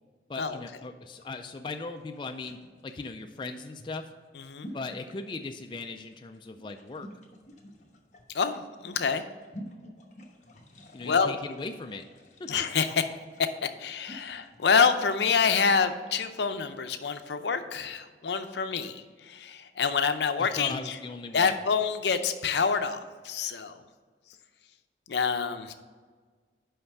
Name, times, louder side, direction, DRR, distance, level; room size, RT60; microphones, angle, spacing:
voice 1, 0.3-2.6 2.8-4.0 4.7-7.1 10.9-12.0 12.4-12.5 20.4-21.6, left 3 dB, 25° left, 5 dB, 0.3 m, -38 dB
sound 1, 1.1-15.8, equal, 45° left, 1.1 m, -50 dB
voice 2, 8.3-9.2 11.0-11.3 12.5-13.0 13.6-21.0 21.3-23.8 25.1-25.7, left 5 dB, 75° left, 9 dB, 0.6 m, -27 dB
5.7 x 5.4 x 6.6 m, 1.5 s
head